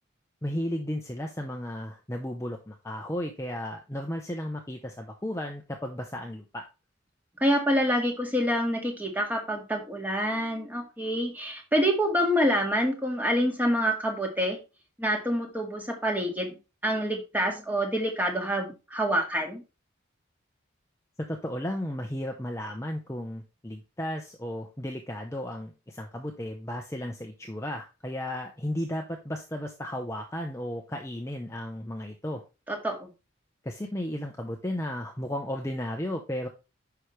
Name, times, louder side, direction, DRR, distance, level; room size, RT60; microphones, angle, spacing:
voice 1, 0.4-6.7 21.2-32.4 33.6-36.5, left 1 dB, 15° left, 3 dB, 0.8 m, -34 dB
voice 2, 7.4-14.6 15.0-16.6 16.8-19.6 32.7-33.1, equal, 10° right, 2 dB, 2.0 m, -27 dB
9.8 x 5.9 x 3.3 m, 0.28 s
head